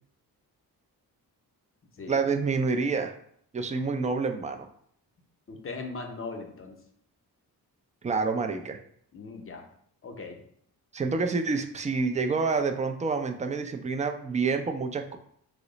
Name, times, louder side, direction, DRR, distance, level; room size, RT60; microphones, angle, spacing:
voice 1, 2.1-3.1 3.5-4.7 8.0-8.8 10.9-15.2, right 4 dB, 20° right, 6 dB, 0.3 m, -28 dB
voice 2, 5.5-6.8 9.1-9.6 10.0-10.4, left 3 dB, 35° left, 4 dB, 0.7 m, -39 dB
2.9 x 2.0 x 3.9 m, 0.65 s
cardioid pair, 60°, 39 cm